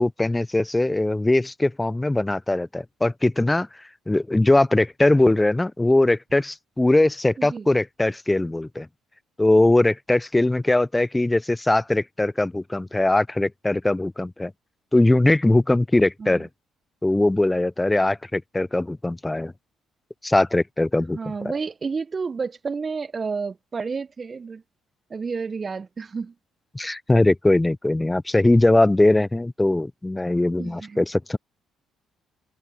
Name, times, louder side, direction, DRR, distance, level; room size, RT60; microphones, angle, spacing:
voice 1, 0.0-3.7 4.1-8.9 9.4-14.5 14.9-16.5 17.0-19.5 20.2-21.2 26.7-31.4, left 2 dB, 15° left, 0.6 m, -20 dB
voice 2, 21.1-24.6 25.1-26.3 30.6-31.0, right 5 dB, 40° right, 0.9 m, -30 dB
hypercardioid pair, 50°, 0 cm